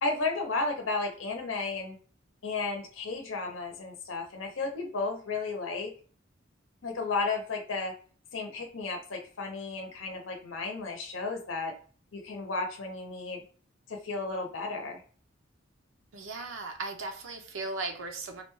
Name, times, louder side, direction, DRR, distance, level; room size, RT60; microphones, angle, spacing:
voice 1, 0.0-2.0 2.4-5.9 6.8-7.9 8.3-11.7 12.1-13.4 13.9-15.0, left 3 dB, 85° left, 2 dB, 0.7 m, -33 dB
voice 2, 16.1-18.4, right 3 dB, 80° right, 3 dB, 0.6 m, -37 dB
3.9 x 2.2 x 3.0 m, 0.42 s
head